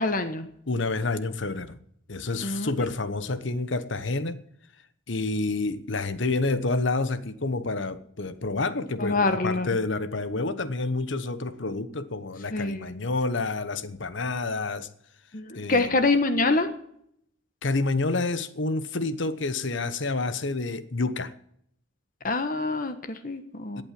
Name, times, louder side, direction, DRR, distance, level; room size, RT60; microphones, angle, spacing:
voice 1, 0.0-0.5 2.4-2.7 9.0-9.7 12.5-12.9 15.3-16.7 22.2-23.8, left 3 dB, 45° left, 1.3 m, -25 dB
voice 2, 0.7-1.8 2.1-4.4 5.1-14.9 15.5-15.9 17.6-21.3 23.8-23.9, left 3 dB, 65° left, 1.1 m, -28 dB
17.0 x 8.8 x 7.6 m
head